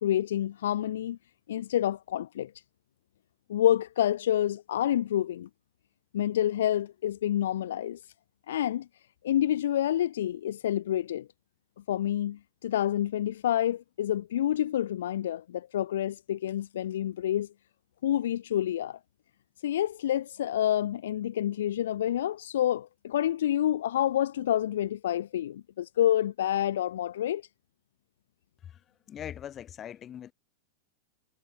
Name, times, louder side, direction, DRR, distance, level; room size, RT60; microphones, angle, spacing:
voice 1, 0.0-1.2 1.5-2.5 3.5-5.5 6.1-8.0 8.5-8.9 9.2-11.3 11.9-17.5 18.0-19.0 19.6-27.4, left 11 dB, 60° left, 1.5 m, -28 dB
voice 2, 29.1-30.3, left 10 dB, 25° left, 7.9 m, -41 dB
figure-of-eight pair, 90°, 0 cm